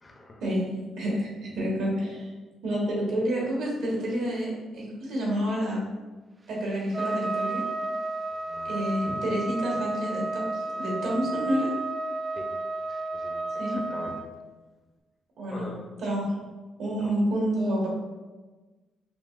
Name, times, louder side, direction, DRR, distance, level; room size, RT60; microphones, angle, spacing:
voice 1, 0.0-0.4 8.3-9.1 12.3-12.5 12.9-14.3 15.5-15.8 17.0-17.1, left 2 dB, 25° left, 1 dB, 0.6 m, -44 dB
voice 2, 1.0-2.3 2.6-5.8 6.5-7.6 8.6-11.7 13.6-13.8 15.4-15.7 16.0-16.4 16.8-17.9, equal, 80° right, -3 dB, 1.3 m, -29 dB
Trumpet, 6.9-14.3, right 2 dB, 25° right, 0.3 m, -32 dB
5.8 x 2.2 x 2.5 m, 1.2 s
cardioid pair, 90°, 0 cm